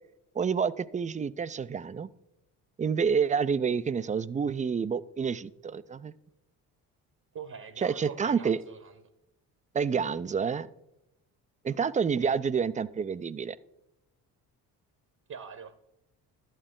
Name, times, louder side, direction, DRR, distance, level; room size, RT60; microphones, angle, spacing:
voice 1, 0.3-2.1 2.8-6.1 7.8-8.6 9.7-10.7 11.6-13.6, right 6 dB, 20° right, 16 dB, 0.3 m, -28 dB
voice 2, 7.3-9.0 12.2-12.3 15.3-15.8, right 6 dB, 45° right, 10 dB, 0.9 m, -44 dB
11.5 x 8.9 x 3.7 m, 0.88 s
supercardioid pair, 65°, 43 cm